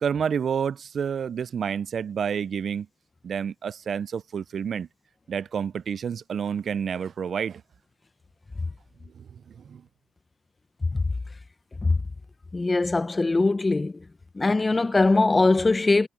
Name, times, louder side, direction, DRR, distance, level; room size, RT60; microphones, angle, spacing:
voice 1, 0.0-2.9 3.2-4.9 5.3-7.6 9.2-9.3 9.6-9.8, right 7 dB, 50° right, 0.4 m, -29 dB
voice 2, 12.5-14.0 14.3-16.1, left 3 dB, 20° left, 0.9 m, -21 dB
cardioid pair, 90°, 0 cm